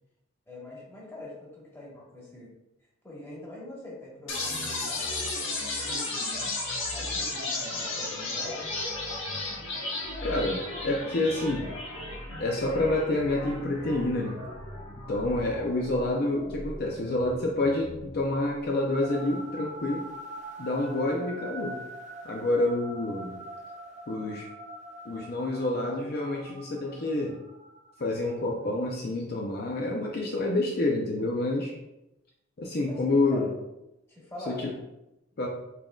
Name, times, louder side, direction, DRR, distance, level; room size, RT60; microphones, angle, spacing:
voice 1, 0.5-2.5 3.0-5.0 5.7-6.5 6.9-8.7 32.9-33.5 34.1-34.6, left 1 dB, 15° left, -5 dB, 1.3 m, -43 dB
sound 1, 4.3-18.3, left 2 dB, 85° left, 1.2 m, -35 dB
voice 2, 10.2-11.7 12.4-14.4 15.1-20.1 20.6-21.8 22.2-23.4 24.1-24.5 25.0-27.4 28.0-31.7 32.6-33.5 34.5-34.7 35.4-35.5, left 2 dB, 50° left, -1 dB, 0.5 m, -28 dB
sound 2, 19.0-28.5, right 1 dB, 40° right, 0.4 m, -43 dB
5.7 x 3.7 x 2.4 m, 0.93 s
head